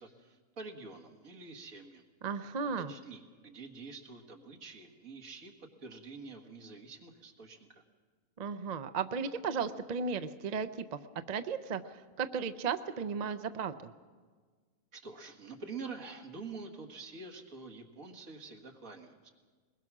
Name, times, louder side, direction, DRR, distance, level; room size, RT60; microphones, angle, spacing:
voice 1, 0.0-2.0 2.9-5.5 5.8-7.7 14.9-19.3, right 4 dB, 80° right, 3 dB, 2.3 m, -47 dB
voice 2, 2.2-2.9 8.4-11.0 11.3-13.9, right 5 dB, 40° right, 11 dB, 0.6 m, -35 dB
22.0 x 21.0 x 6.1 m, 1.5 s
omnidirectional pair, 1.4 m